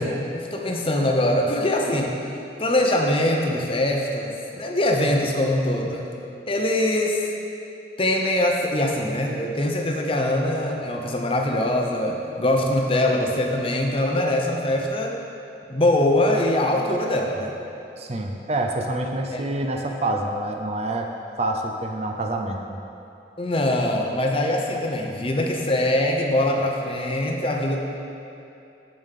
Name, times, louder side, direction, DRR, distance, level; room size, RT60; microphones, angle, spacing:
voice 1, 0.0-2.3 2.6-6.1 6.5-7.3 8.0-15.2 15.7-17.5 19.3-19.5 23.4-27.8, left 1 dB, 30° left, 1 dB, 0.8 m, -23 dB
voice 2, 18.0-21.1 21.4-22.8, right 2 dB, 35° right, 3 dB, 0.5 m, -27 dB
15.5 x 5.2 x 3.7 m, 2.7 s
head